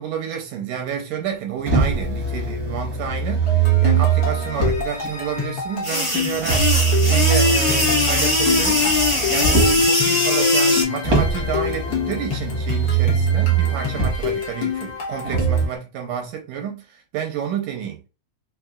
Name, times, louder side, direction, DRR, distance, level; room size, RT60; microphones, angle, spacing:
voice 1, 0.0-6.7 7.0-8.8 9.3-18.0, right 8 dB, 80° right, 2.2 m, -30 dB
Motor vehicle (road), 1.7-5.1 6.4-9.9 11.0-14.3 15.2-15.7, right 6 dB, 60° right, 0.9 m, -21 dB
sound 1, 3.5-15.8, left 7 dB, 85° left, 1.0 m, -29 dB
sound 2, 5.8-10.8, left 2 dB, 40° left, 0.4 m, -19 dB
5.6 x 2.4 x 2.3 m
omnidirectional pair, 3.9 m